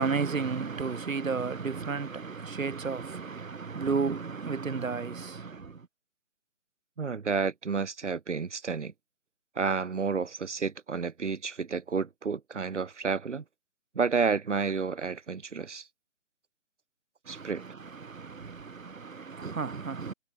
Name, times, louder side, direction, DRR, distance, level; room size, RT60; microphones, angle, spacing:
voice 1, 0.0-5.7 17.3-17.6 18.0-20.1, right 5 dB, 85° right, 1.2 m, -32 dB
voice 2, 7.0-8.9 9.6-13.4 14.0-15.9 17.3-17.6, right 5 dB, 65° right, 1.9 m, -30 dB
figure-of-eight pair, 150°, 39 cm